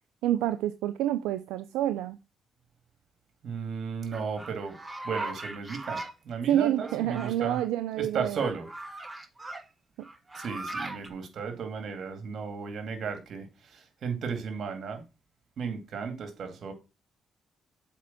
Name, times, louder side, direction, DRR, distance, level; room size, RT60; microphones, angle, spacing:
voice 1, 0.2-2.2 6.5-8.4, right 12 dB, 90° right, 0.4 m, -28 dB
voice 2, 3.4-4.8 5.0-7.6 8.0-8.7 10.3-15.0 15.6-16.7, right 5 dB, 65° right, 2.3 m, -35 dB
sound 1, 4.1-6.1 6.8-7.7 8.3-9.6 10.0-11.1, right 2 dB, 20° right, 1.6 m, -39 dB
7.3 x 4.6 x 5.8 m
supercardioid pair, 60°, 0 cm